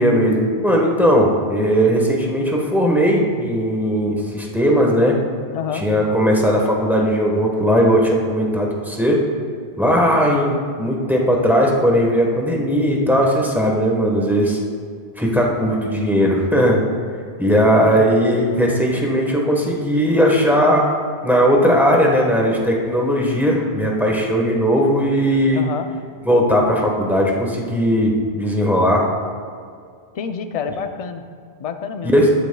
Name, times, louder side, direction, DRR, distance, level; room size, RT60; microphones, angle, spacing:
voice 1, 0.0-5.2 5.7-9.2 9.8-14.6 15.2-16.8 17.4-20.8 21.2-25.7 26.3-29.0 32.0-32.3, equal, ahead, -1 dB, 1.2 m, -17 dB
voice 2, 5.5-5.9 17.7-18.1 25.5-25.9 30.1-31.3 31.6-32.2, left 6 dB, 45° left, 7 dB, 0.5 m, -27 dB
13.0 x 9.0 x 2.3 m, 2.1 s
omnidirectional pair, 1.1 m